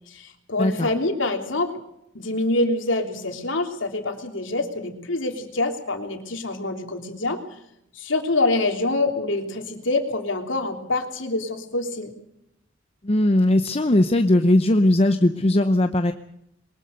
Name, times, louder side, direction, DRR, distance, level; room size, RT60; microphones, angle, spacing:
voice 1, 0.1-1.7 2.1-7.4 7.9-12.1, left 2 dB, 70° left, 4 dB, 3.2 m, -25 dB
voice 2, 0.6-0.9 13.0-16.1, left 1 dB, 30° left, 9 dB, 0.8 m, -19 dB
22.5 x 21.0 x 6.6 m, 0.78 s
head